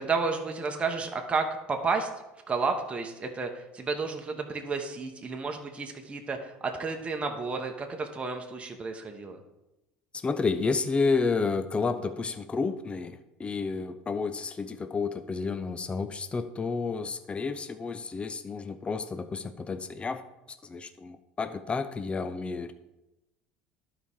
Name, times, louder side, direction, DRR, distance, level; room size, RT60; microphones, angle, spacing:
voice 1, 0.0-2.1 2.5-9.4, right 4 dB, 25° right, 3 dB, 1.1 m, -31 dB
voice 2, 10.1-22.7, left 4 dB, 25° left, 11 dB, 0.6 m, -31 dB
11.5 x 4.9 x 3.6 m, 0.96 s
supercardioid pair, 85°, 5 cm